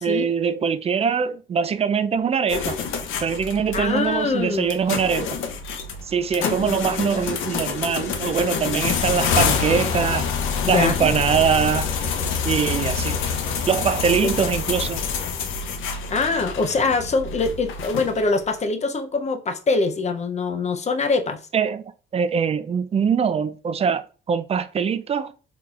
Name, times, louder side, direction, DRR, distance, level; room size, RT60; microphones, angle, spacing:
voice 1, 0.0-2.8 3.2-5.4 6.0-10.3 10.7-11.9 12.4-13.2 13.7-15.0 21.5-21.8 22.1-25.3, right 6 dB, 30° right, 0.4 m, -23 dB
sound 1, 2.5-18.4, left 6 dB, 85° left, 0.6 m, -27 dB
voice 2, 3.7-4.7 6.4-6.7 10.6-11.1 14.2-14.3 16.1-21.4, left 3 dB, 35° left, 0.6 m, -23 dB
3.8 x 2.9 x 2.4 m
cardioid pair, 90°, 20 cm